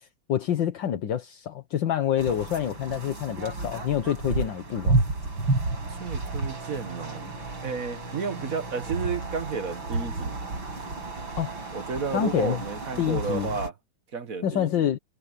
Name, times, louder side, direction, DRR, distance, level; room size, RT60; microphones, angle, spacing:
voice 1, 0.3-5.0 11.4-11.7 12.1-12.6 13.0-13.5 14.4-15.0, left 10 dB, 70° left, 1.9 m, -27 dB
sound 1, 2.2-13.7, right 2 dB, 85° right, 6.9 m, -31 dB
voice 2, 6.0-10.4 11.7-13.7 14.1-14.9, right 5 dB, 45° right, 1.7 m, -32 dB
omnidirectional pair, 2.1 m